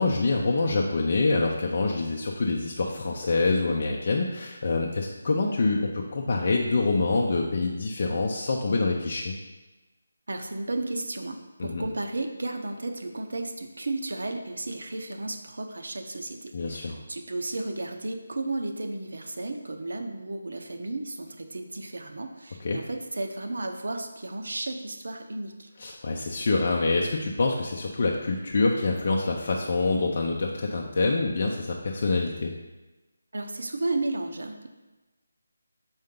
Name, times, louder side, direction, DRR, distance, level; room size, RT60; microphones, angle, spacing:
voice 1, 0.0-9.3 11.6-11.8 16.5-17.0 22.6-22.8 25.8-32.5, left 3 dB, 40° left, -1 dB, 0.5 m, -26 dB
voice 2, 10.3-25.7 33.3-34.7, right 2 dB, 75° right, 5 dB, 0.8 m, -33 dB
6.5 x 4.4 x 3.8 m, 1.1 s
figure-of-eight pair, 175°, 0 cm